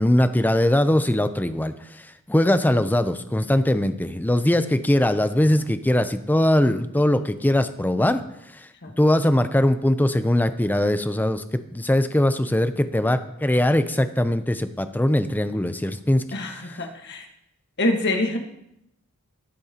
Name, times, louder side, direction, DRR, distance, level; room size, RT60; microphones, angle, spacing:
voice 1, 0.0-8.2 8.6-8.7 9.0-16.2, left 1 dB, 10° left, 10 dB, 0.5 m, -21 dB
voice 2, 16.3-17.3 17.8-18.4, left 1 dB, 50° left, 3 dB, 1.5 m, -25 dB
19.5 x 8.7 x 2.9 m, 0.80 s
head